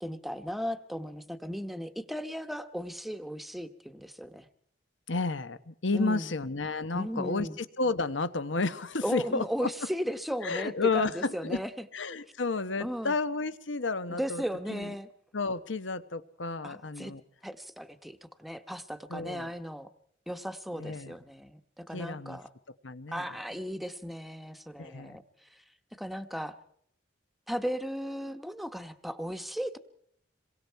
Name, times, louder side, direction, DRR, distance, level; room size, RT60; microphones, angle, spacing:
voice 1, 0.0-4.5 5.9-6.3 6.9-7.6 9.0-11.8 12.8-13.1 14.1-15.1 16.6-17.1 17.4-19.9 20.3-22.5 23.1-25.6 26.0-26.6 27.5-29.8, equal, ahead, 9 dB, 1.0 m, -36 dB
voice 2, 5.1-9.7 10.4-11.6 11.9-14.4 14.7-14.9 15.3-17.2 19.1-19.5 20.8-21.1 21.9-22.4 22.8-23.2 24.8-25.2, left 3 dB, 80° left, 13 dB, 1.1 m, -32 dB
27.5 x 23.0 x 4.6 m, 0.67 s
head